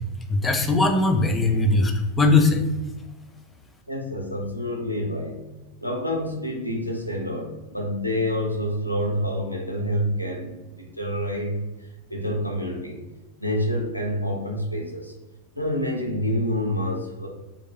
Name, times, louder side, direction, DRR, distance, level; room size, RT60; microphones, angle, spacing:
voice 1, 0.3-2.6, left 3 dB, 15° left, 4 dB, 0.3 m, -20 dB
voice 2, 3.9-5.5 5.8-13.0 13.4-15.1 15.5-17.3, equal, 90° left, 1 dB, 0.4 m, -28 dB
2.2 x 2.2 x 2.7 m, 1.1 s
figure-of-eight pair, 90°, 0 cm